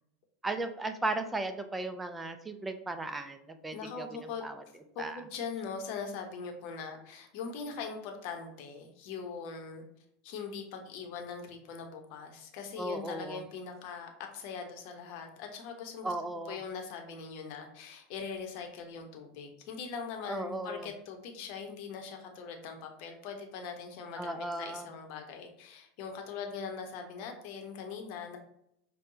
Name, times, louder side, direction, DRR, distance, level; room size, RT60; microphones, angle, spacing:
voice 1, 0.4-4.1 4.4-4.6 5.0-5.2 12.8-13.4 16.0-16.6 20.3-20.9 24.2-24.9, right 2 dB, 15° right, 8 dB, 0.5 m, -36 dB
voice 2, 3.7-4.5 4.9-9.8 10.2-16.1 16.5-28.4, left 5 dB, 60° left, 4 dB, 0.8 m, -41 dB
5.1 x 2.2 x 2.7 m, 0.75 s
hypercardioid pair, 90°, 0 cm